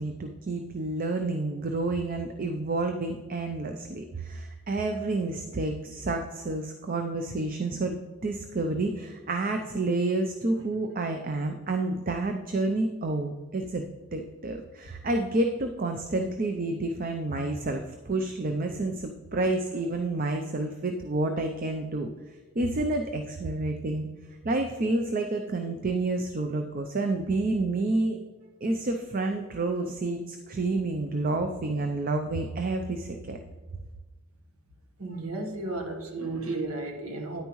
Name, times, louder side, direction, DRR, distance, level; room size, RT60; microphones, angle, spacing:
voice 1, 0.0-13.8 14.1-22.1 22.6-24.1 24.4-28.2 28.6-33.4, right 2 dB, 40° right, 5 dB, 0.5 m, -29 dB
voice 2, 35.0-37.4, right 2 dB, 85° right, 3 dB, 1.3 m, -34 dB
10.0 x 9.0 x 3.1 m, 1.2 s
head